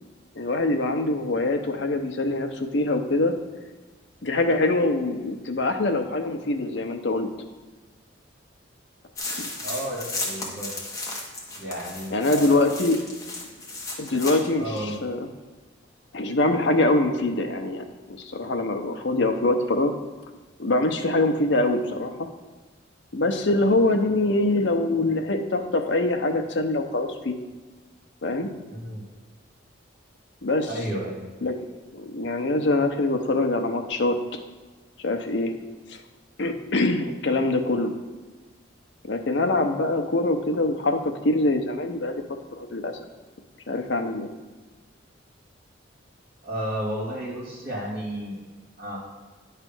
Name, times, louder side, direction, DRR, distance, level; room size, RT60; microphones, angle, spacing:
voice 1, 0.3-3.3 4.2-7.3 9.4-9.5 12.1-13.0 14.0-15.3 16.1-19.9 20.6-22.3 23.1-27.3 28.2-28.5 30.4-30.7 31.4-31.6 31.9-34.2 35.0-35.5 35.9-36.0 36.4-38.0 39.0-42.2 42.6-42.9 43.7-44.3, left 2 dB, 65° left, 5 dB, 0.8 m, -24 dB
sound 1, 9.1-14.5 14.8-14.9, left 2 dB, 15° left, 1.2 m, -34 dB
voice 2, 9.6-10.7 11.6-12.7 14.6-15.0 28.7-29.1 30.7-31.2 46.4-48.4 48.8-49.0, right 1 dB, 50° right, -3 dB, 2.4 m, -32 dB
10.0 x 3.4 x 6.0 m, 1.3 s
head